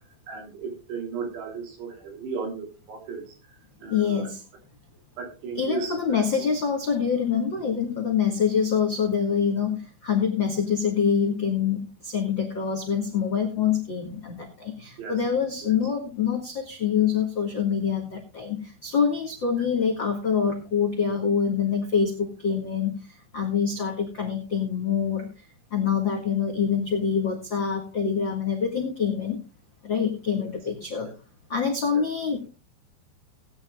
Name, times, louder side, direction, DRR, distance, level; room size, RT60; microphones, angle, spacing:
voice 1, 0.3-3.3 3.8-4.3 5.2-6.4 15.0-15.2 15.6-15.7 31.9-32.0, right 4 dB, 70° right, 2 dB, 5.1 m, -35 dB
voice 2, 3.9-4.4 5.5-22.9 23.3-25.3 25.7-29.4 29.8-31.1 31.5-32.4, left 7 dB, 65° left, 1 dB, 1.1 m, -25 dB
18.5 x 9.7 x 2.4 m, 0.30 s
omnidirectional pair, 5.1 m